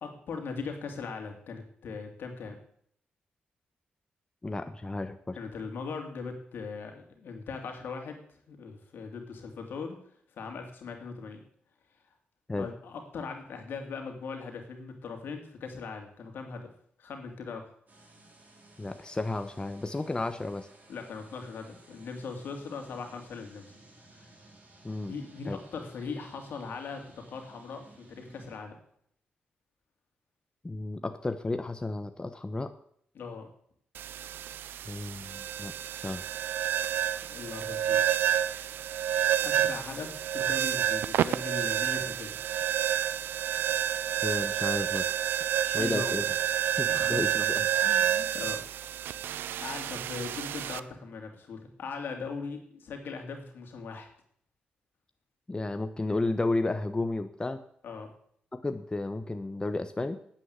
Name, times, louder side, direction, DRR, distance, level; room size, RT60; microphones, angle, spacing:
voice 1, 0.0-2.6 5.3-10.0 10.4-11.4 12.6-16.7 17.0-17.6 20.9-23.7 24.1-24.3 25.1-28.8 33.1-33.5 37.3-38.0 39.4-42.4 45.6-46.2 46.9-47.2 47.8-49.0 49.6-54.1 57.8-58.1, left 4 dB, 75° left, 4 dB, 2.6 m, -40 dB
voice 2, 4.4-5.4 12.5-12.7 18.8-20.7 24.8-25.1 25.5-25.6 30.6-32.7 34.8-36.2 44.2-45.1 45.7-46.2 46.8-47.7 55.5-57.6 58.5-60.2, left 2 dB, 25° left, 8 dB, 1.0 m, -32 dB
sound 1, 17.9-28.6, right 2 dB, 45° right, 4.3 m, -57 dB
sound 2, 33.9-50.8, right 10 dB, 85° right, 0.5 m, -29 dB
9.5 x 8.5 x 8.2 m, 0.65 s
supercardioid pair, 55°, 4 cm